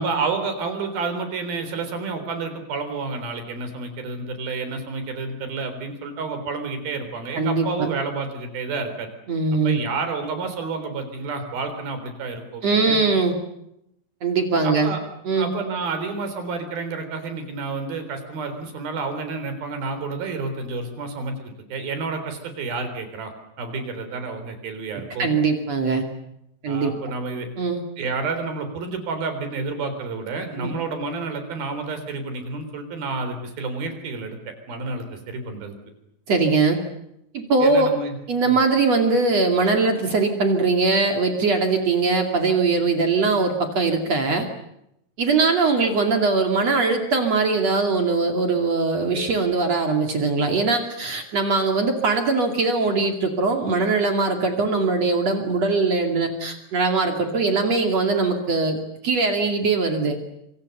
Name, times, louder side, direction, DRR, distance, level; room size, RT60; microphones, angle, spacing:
voice 1, 0.0-9.1 9.6-13.0 14.6-15.0 15.3-23.3 23.6-25.3 26.7-27.5 28.0-34.4 34.7-35.8 37.6-38.2 38.5-38.6, right 4 dB, 90° right, 8 dB, 5.7 m, -30 dB
voice 2, 7.3-7.9 9.3-9.8 12.6-13.4 14.2-15.0 15.3-15.5 25.2-26.0 26.6-26.9 27.6-27.8 30.6-30.7 36.3-36.8 37.3-37.9 38.3-44.5 45.2-58.8 59.0-60.2, right 3 dB, 50° right, 4 dB, 3.4 m, -21 dB
26.5 x 26.0 x 6.8 m, 0.80 s
omnidirectional pair, 4.1 m